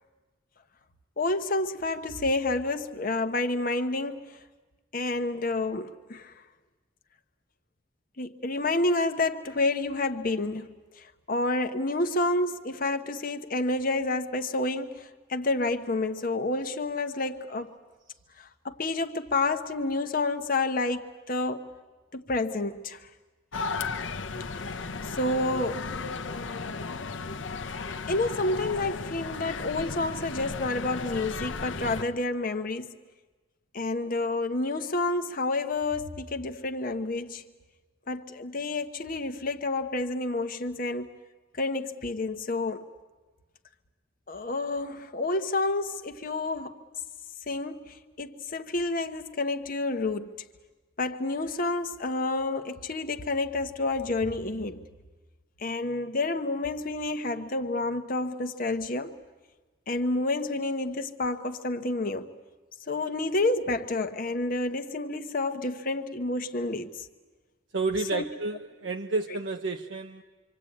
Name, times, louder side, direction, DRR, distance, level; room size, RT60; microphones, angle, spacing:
voice 1, 1.2-4.4 4.9-6.3 8.2-10.7 11.3-17.7 18.4-21.6 22.1-23.0 25.1-25.9 28.1-32.9 33.7-37.4 38.1-41.1 41.6-42.8 44.3-46.8 47.5-50.4 51.0-54.8 55.6-59.1 59.9-62.3 62.9-66.9 68.1-68.2, left 2 dB, 45° left, 1.1 m, -29 dB
sound 1, 23.5-32.0, left 4 dB, 75° left, 1.0 m, -35 dB
voice 2, 67.7-70.2, right 3 dB, 70° right, 0.9 m, -30 dB
26.0 x 25.5 x 8.6 m
head